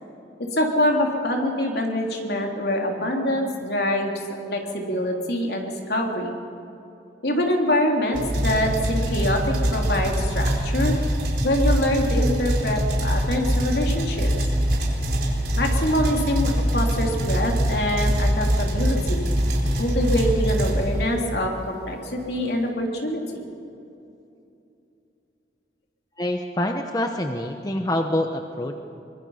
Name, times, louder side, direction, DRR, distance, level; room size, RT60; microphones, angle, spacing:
voice 1, 0.4-4.1 4.5-6.3 7.2-10.9 11.4-14.3 15.5-19.3 19.8-23.5, left 1 dB, 65° left, 1 dB, 3.2 m, -25 dB
sound 1, 8.1-21.3, equal, 60° right, 4.4 m, -23 dB
voice 2, 26.2-28.8, left 1 dB, 20° left, 4 dB, 0.9 m, -26 dB
24.0 x 22.0 x 5.7 m, 2.8 s
head